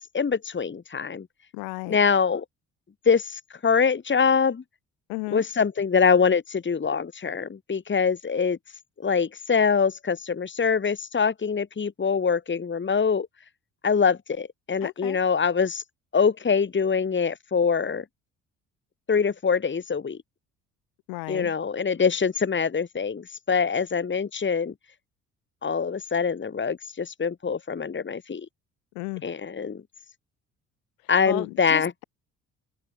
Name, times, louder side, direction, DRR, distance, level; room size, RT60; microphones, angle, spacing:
voice 1, 0.1-1.3 1.9-2.4 3.1-4.6 5.3-8.6 9.0-13.3 13.8-15.8 16.1-18.0 19.1-20.2 21.3-24.7 25.6-28.5 29.2-29.8 31.1-31.9, left 6 dB, 35° left, 2.7 m, -24 dB
voice 2, 1.5-2.0 5.1-5.5 14.8-15.2 21.1-21.5 28.9-29.2 31.2-32.0, left 29 dB, 80° left, 5.4 m, -34 dB
hypercardioid pair, 55°, 34 cm